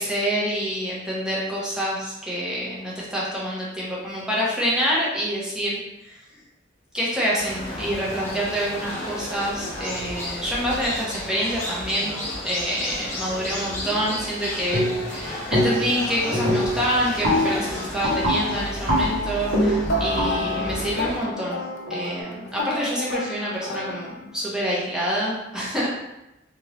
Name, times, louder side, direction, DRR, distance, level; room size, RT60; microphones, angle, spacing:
voice 1, 0.0-6.2 6.9-12.2 12.4-21.6 21.9-25.9, equal, 5° right, -7 dB, 0.8 m, -27 dB
sound 1, 7.4-21.2, left 1 dB, 15° left, 1.4 m, -33 dB
sound 2, 14.7-15.2 15.5-16.0 16.3-22.1, left 1 dB, 85° right, 1.3 m, -24 dB
sound 3, 19.9-24.5, left 1 dB, 75° left, 0.5 m, -32 dB
3.4 x 2.9 x 3.0 m, 0.92 s
head